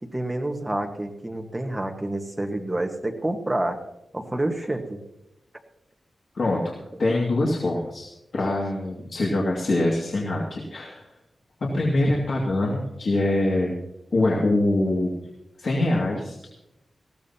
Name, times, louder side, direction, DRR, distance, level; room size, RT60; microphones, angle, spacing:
voice 1, 0.0-3.8 4.1-5.0, right 1 dB, 15° right, 4 dB, 1.4 m, -28 dB
voice 2, 6.3-8.1 8.3-11.0 11.6-13.7 14.1-15.1 15.6-16.5, left 2 dB, 55° left, -3 dB, 2.2 m, -24 dB
19.5 x 15.5 x 2.9 m, 0.89 s
wide cardioid pair, 160°, 0 cm